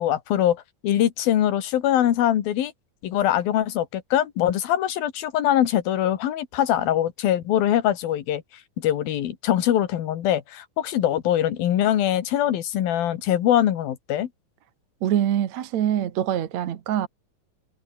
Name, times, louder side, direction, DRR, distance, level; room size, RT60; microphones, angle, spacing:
voice 1, 0.0-2.7 3.0-8.4 8.8-14.3, left 11 dB, 80° left, 3.6 m, -23 dB
voice 2, 15.0-17.1, right 10 dB, 60° right, 2.4 m, -24 dB
omnidirectional pair, 4.2 m